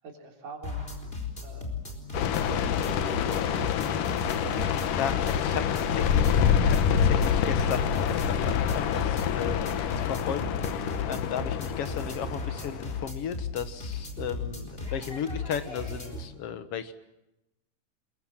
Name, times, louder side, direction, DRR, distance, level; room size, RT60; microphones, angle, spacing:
voice 1, 0.0-0.9 1.4-4.2 5.3-5.4 5.7-6.2 9.5-9.9 11.1-11.3, right 3 dB, 80° right, 2 dB, 5.2 m, -47 dB
sound 1, 0.6-16.2, left 4 dB, 15° left, 4.3 m, -36 dB
sound 2, 2.1-13.0, left 8 dB, 80° left, 2.8 m, -27 dB
voice 2, 5.0-9.7 10.1-16.9, left 8 dB, 55° left, 11 dB, 2.1 m, -35 dB
27.0 x 22.5 x 7.5 m, 0.91 s
omnidirectional pair, 3.7 m